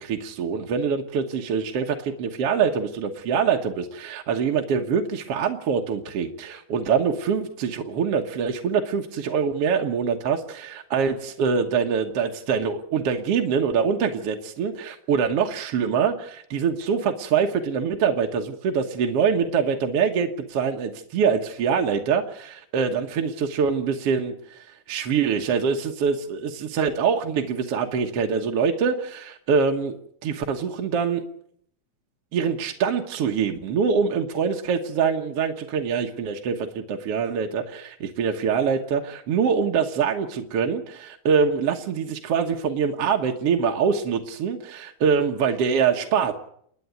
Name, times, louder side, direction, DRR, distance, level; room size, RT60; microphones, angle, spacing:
voice 1, 0.0-30.0 30.2-31.3 32.3-46.3, right 6 dB, 55° right, 3 dB, 1.9 m, -24 dB
29.5 x 10.0 x 9.4 m, 0.67 s
omnidirectional pair, 3.9 m